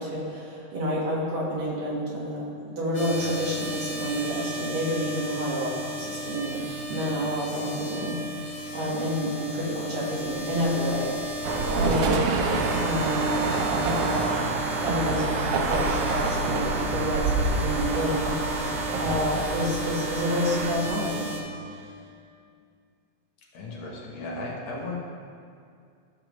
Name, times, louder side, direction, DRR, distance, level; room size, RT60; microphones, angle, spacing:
voice 1, 0.0-11.4 11.7-14.3 14.7-21.4 21.7-21.8, equal, 65° right, -5 dB, 2.6 m, -29 dB
sound 1, 2.9-21.4, equal, 50° left, 2.4 m, -34 dB
sound 2, 10.2-17.6, left 4 dB, 85° left, 1.4 m, -40 dB
sound 3, 11.4-20.7, right 4 dB, 85° right, 1.3 m, -27 dB
voice 2, 23.5-25.0, left 2 dB, 65° left, -3 dB, 2.1 m, -35 dB
13.5 x 6.8 x 3.0 m, 2.3 s
omnidirectional pair, 3.4 m